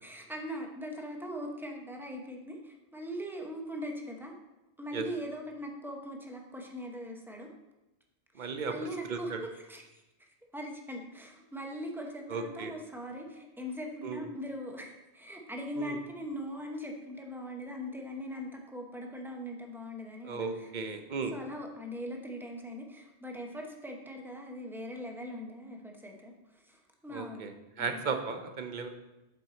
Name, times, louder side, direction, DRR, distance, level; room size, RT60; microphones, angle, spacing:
voice 1, 0.0-4.3 4.8-7.5 8.3-20.7 21.3-27.5 27.8-28.0, equal, ahead, 1 dB, 0.8 m, -41 dB
voice 2, 8.3-8.7 9.1-9.4 12.3-12.7 14.0-14.2 15.8-16.0 20.2-21.3 27.1-27.5 27.8-28.9, right 5 dB, 50° right, 6 dB, 0.8 m, -35 dB
8.0 x 4.6 x 4.0 m, 1.0 s
omnidirectional pair, 1.1 m